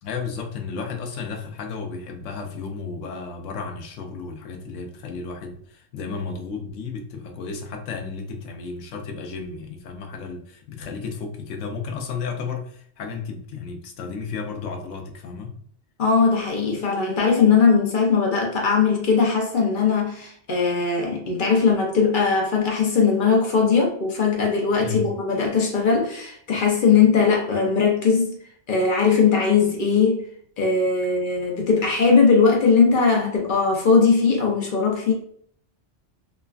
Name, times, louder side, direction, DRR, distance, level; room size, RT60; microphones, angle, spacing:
voice 1, 0.0-15.6 24.7-25.1, left 5 dB, 85° left, 0.9 m, -33 dB
voice 2, 16.0-28.4 28.7-30.2 30.6-35.1, left 5 dB, 50° left, 0.7 m, -19 dB
3.1 x 2.2 x 2.3 m
omnidirectional pair, 1.2 m